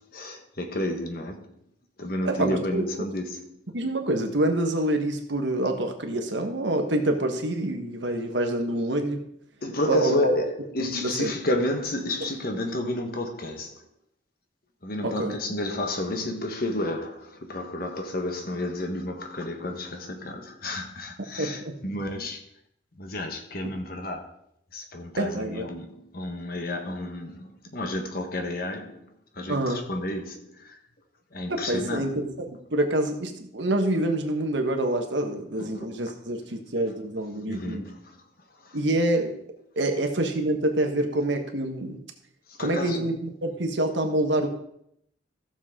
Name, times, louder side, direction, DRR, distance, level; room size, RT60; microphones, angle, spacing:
voice 1, 0.1-1.5 2.0-3.6 9.6-13.8 14.8-22.4 22.9-24.3 24.7-29.1 29.3-30.8 31.3-32.2 35.6-36.0 37.5-38.2 38.6-38.8 42.5-43.1, left 1 dB, 50° left, 1.3 m, -31 dB
voice 2, 2.2-2.9 3.7-9.2 9.9-10.3 10.8-11.3 15.0-15.4 21.4-21.8 25.2-25.7 29.5-29.8 31.5-37.8 38.7-39.4 39.8-42.0 42.6-43.2 43.4-44.5, right 1 dB, 65° right, 1.4 m, -26 dB
15.0 x 7.1 x 3.7 m
head